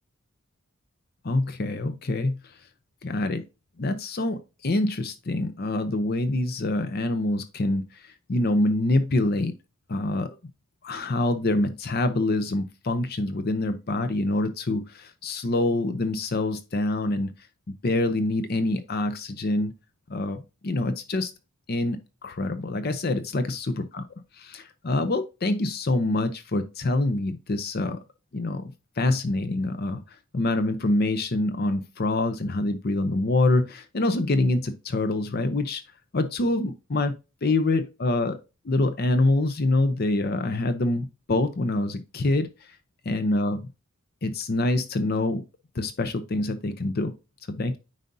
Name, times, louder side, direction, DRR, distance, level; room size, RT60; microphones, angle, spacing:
voice 1, 1.2-2.6 3.0-3.4 3.8-9.5 9.9-10.3 10.8-17.3 17.7-19.7 20.1-21.3 21.7-24.0 24.3-28.0 28.3-35.8 36.1-37.1 37.4-38.4 38.6-42.8 43.1-43.6 44.2-45.4 45.7-47.1 47.5-47.8, left 2 dB, 45° left, 0.6 m, -26 dB
9.3 x 4.9 x 2.7 m
head